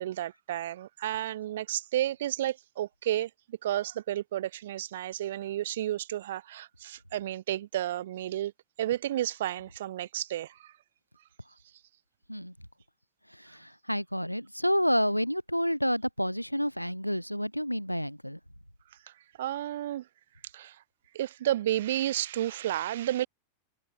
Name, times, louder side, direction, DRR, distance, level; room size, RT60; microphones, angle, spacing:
voice 1, 0.0-8.5 8.8-10.7 19.1-20.1 20.5-20.8 21.1-23.3, right 13 dB, 60° right, 1.7 m, -32 dB
voice 2, 13.5-18.4, equal, 90° left, 0.8 m, -29 dB
figure-of-eight pair, 90°, 0 cm